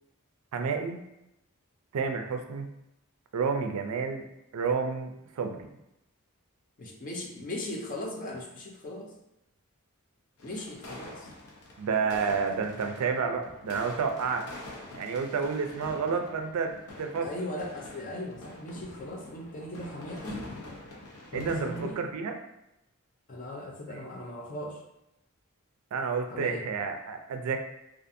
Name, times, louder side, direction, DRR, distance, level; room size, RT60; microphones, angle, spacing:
voice 1, 0.5-1.0 1.9-2.7 3.3-4.2 4.5-5.1 5.4-5.7 11.8-14.5 15.0-17.3 21.3-22.3 23.9-24.0 25.9-27.6, right 5 dB, 75° right, 5 dB, 0.3 m, -30 dB
voice 2, 6.8-9.1 10.4-11.3 17.2-20.5 21.3-22.0 23.3-24.8 26.3-26.6, left 1 dB, 35° left, 0 dB, 0.4 m, -38 dB
sound 1, 10.4-22.0, left 2 dB, 85° left, 0.6 m, -45 dB
2.5 x 2.4 x 2.5 m, 0.89 s
head